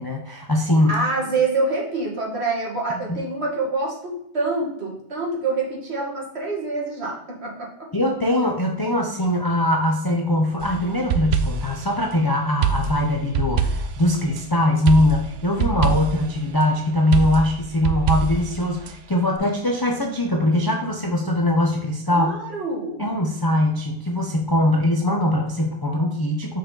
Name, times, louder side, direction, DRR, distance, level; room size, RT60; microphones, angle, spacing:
voice 1, 0.0-1.0 3.1-3.2 7.9-22.3 23.0-26.6, left 1 dB, 35° left, 1 dB, 0.3 m, -21 dB
voice 2, 0.9-7.9 22.1-23.0, right 3 dB, 45° right, -2 dB, 2.0 m, -26 dB
sound 1, 10.6-11.8 12.6-14.4 14.9-16.3 17.1-18.9, right 6 dB, 65° right, 0.8 m, -24 dB
6.2 x 4.7 x 3.9 m, 0.78 s
omnidirectional pair, 1.6 m